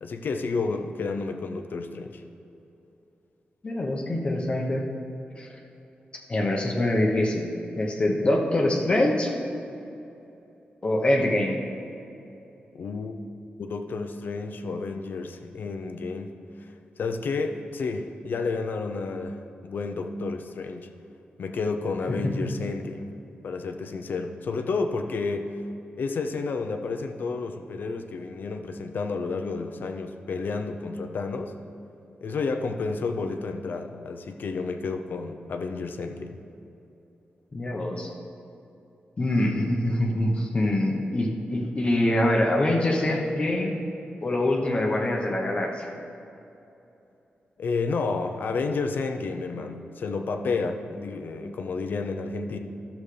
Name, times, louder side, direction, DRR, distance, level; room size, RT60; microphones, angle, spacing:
voice 1, 0.0-2.2 12.7-13.2 13.6-20.9 21.4-23.1 23.4-25.5 25.9-31.5 32.2-36.4 47.6-52.6, left 4 dB, 65° left, 5 dB, 0.6 m, -31 dB
voice 2, 3.6-4.8 5.4-5.5 6.3-7.5 7.8-9.3 10.8-11.6 22.1-22.5 37.5-38.1 39.2-43.7 44.2-45.9, left 1 dB, 30° left, 0 dB, 0.9 m, -24 dB
12.5 x 7.1 x 3.3 m, 2.9 s
wide cardioid pair, 130°, 3 cm